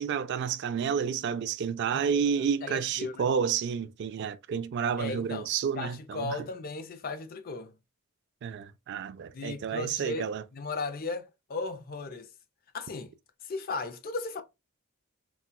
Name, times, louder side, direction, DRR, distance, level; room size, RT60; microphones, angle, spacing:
voice 1, 0.0-6.4 8.4-10.4, right 7 dB, 50° right, 0.3 m, -30 dB
voice 2, 1.9-3.3 5.0-5.5 5.8-7.7 9.3-12.3 12.7-13.1 13.4-14.4, left 3 dB, 40° left, 0.4 m, -36 dB
4.1 x 2.2 x 2.2 m
head